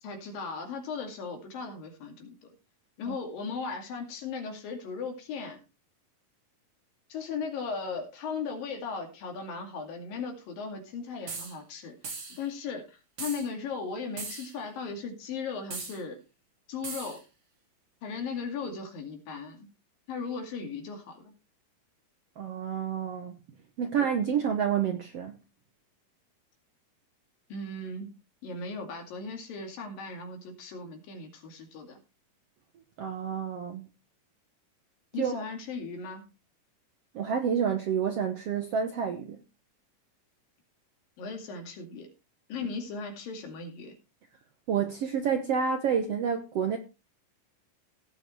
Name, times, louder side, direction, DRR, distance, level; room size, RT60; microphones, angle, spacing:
voice 1, 0.0-2.5 3.0-5.6 7.1-12.0 12.3-16.2 16.7-17.2 18.0-19.7 20.1-21.3 27.5-28.1 28.4-32.0 35.1-36.2 41.2-42.1 42.5-44.0, left 4 dB, 80° left, 4.0 m, -37 dB
sound 1, 11.3-11.6 12.0-12.4 13.2-13.5 14.2-14.5 15.7-16.0 16.8-17.2, right 4 dB, 35° right, 2.4 m, -38 dB
voice 2, 22.4-23.4 23.8-25.4 33.0-33.9 35.2-35.4 37.1-39.4 44.7-46.8, right 7 dB, 70° right, 1.5 m, -29 dB
17.0 x 7.8 x 3.1 m
omnidirectional pair, 4.0 m